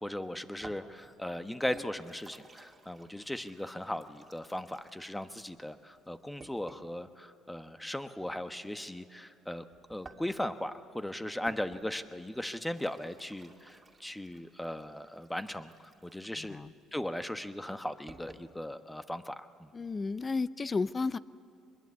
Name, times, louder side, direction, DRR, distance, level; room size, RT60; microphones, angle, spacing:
voice 1, 0.0-9.6 9.9-16.6 16.9-19.7, left 1 dB, 5° left, 10 dB, 1.1 m, -38 dB
sound 1, 0.6-7.0 9.7-18.5, right 3 dB, 25° right, 2.3 m, -56 dB
voice 2, 16.4-16.7 19.7-21.2, left 4 dB, 25° left, 17 dB, 0.6 m, -33 dB
24.0 x 21.5 x 8.4 m, 2.4 s
cardioid pair, 95°, 0 cm